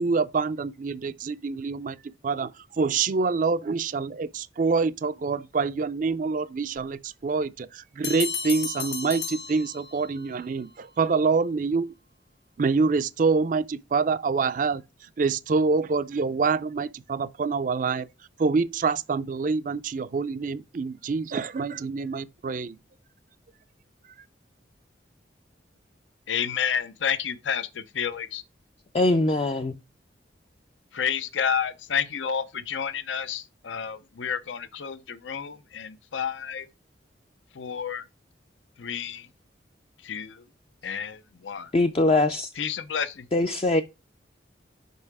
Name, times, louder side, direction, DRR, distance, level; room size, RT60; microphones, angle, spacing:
voice 1, 0.0-11.9 12.6-18.1 18.4-22.8, right 4 dB, 45° right, 0.4 m, -26 dB
sound 1, 8.0-10.3, left 6 dB, 55° left, 1.4 m, -33 dB
voice 2, 26.3-28.4 30.9-36.7 37.5-38.1 38.8-39.3 40.0-40.4 40.8-41.7 42.6-43.3, left 7 dB, 85° left, 0.6 m, -30 dB
voice 3, 28.9-29.7 41.7-42.5 43.3-43.8, left 2 dB, 30° left, 0.4 m, -22 dB
5.5 x 5.4 x 4.6 m
head